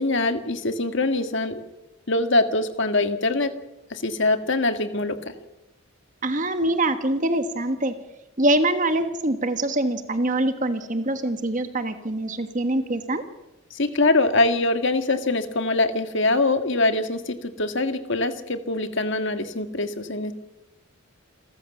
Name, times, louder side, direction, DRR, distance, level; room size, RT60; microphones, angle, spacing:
voice 1, 0.0-1.6 2.1-3.5 3.9-5.3 13.7-20.3, left 2 dB, 55° left, 8 dB, 1.8 m, -23 dB
voice 2, 6.2-7.9 8.4-13.2, right 1 dB, 35° right, 9 dB, 1.4 m, -24 dB
28.5 x 14.0 x 7.2 m, 0.96 s
head